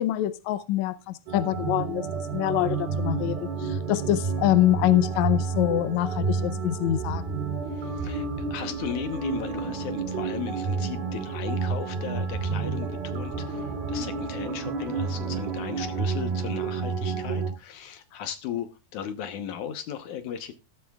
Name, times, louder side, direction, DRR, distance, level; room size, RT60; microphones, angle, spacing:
voice 1, 0.0-2.1 2.3-7.4, left 14 dB, 85° left, 13 dB, 1.6 m, -25 dB
sound 1, 1.3-17.5, right 5 dB, 85° right, 4.7 m, -30 dB
voice 2, 7.8-20.5, left 9 dB, 65° left, 10 dB, 2.2 m, -36 dB
14.5 x 13.5 x 2.3 m, 0.26 s
omnidirectional pair, 4.2 m